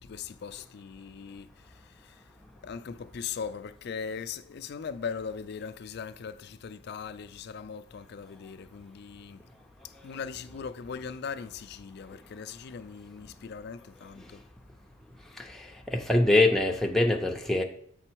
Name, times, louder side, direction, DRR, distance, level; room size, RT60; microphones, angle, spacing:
voice 1, 0.0-2.3 2.6-9.4 9.8-14.4, left 6 dB, 50° left, 0.4 m, -40 dB
voice 2, 15.4-17.6, left 2 dB, ahead, 0.5 m, -24 dB
7.6 x 3.9 x 4.5 m
head